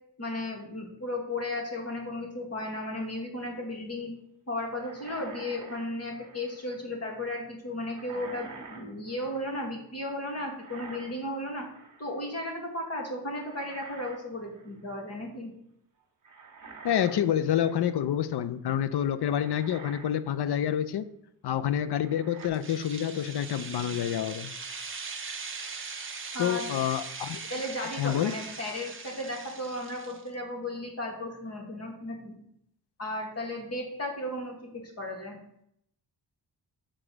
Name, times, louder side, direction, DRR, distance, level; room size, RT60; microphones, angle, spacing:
voice 1, 0.2-4.1 4.5-11.7 12.0-15.5 26.3-26.6 27.5-32.3 33.0-35.4, left 1 dB, 35° left, 1 dB, 1.7 m, -35 dB
sound 1, 4.8-6.7 7.9-9.6 10.6-11.4 11.7-12.2 13.3-14.2 14.5-14.8 16.2-18.1 18.8-18.9 19.3-20.2 20.6-20.8 22.0-22.5, right 4 dB, 45° right, 1.3 m, -48 dB
voice 2, 16.8-21.1 21.4-24.5 26.4-27.4 28.0-28.3, left 10 dB, 70° left, 13 dB, 0.6 m, -28 dB
sound 2, 22.4-30.3, right 5 dB, 30° right, 0.8 m, -40 dB
6.8 x 3.8 x 6.1 m, 0.74 s
wide cardioid pair, 130°, 42 cm